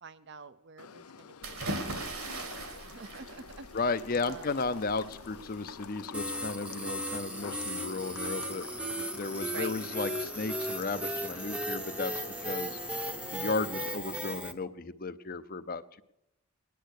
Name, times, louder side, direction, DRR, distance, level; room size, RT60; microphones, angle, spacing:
voice 1, 0.0-2.4 2.9-3.9 4.2-4.6 9.4-9.8, right 5 dB, 50° right, 13 dB, 0.6 m, -48 dB
sound 1, 0.8-14.0, left 6 dB, 85° left, 0.7 m, -48 dB
sound 2, 1.4-6.2, right 2 dB, 70° right, 2.7 m, -40 dB
voice 2, 3.7-12.1 12.5-12.8 13.3-16.0, left 3 dB, 40° left, 13 dB, 0.6 m, -34 dB
sound 3, 6.1-14.5, equal, 5° right, 0.8 m, -36 dB
20.0 x 10.0 x 6.5 m, 0.87 s
head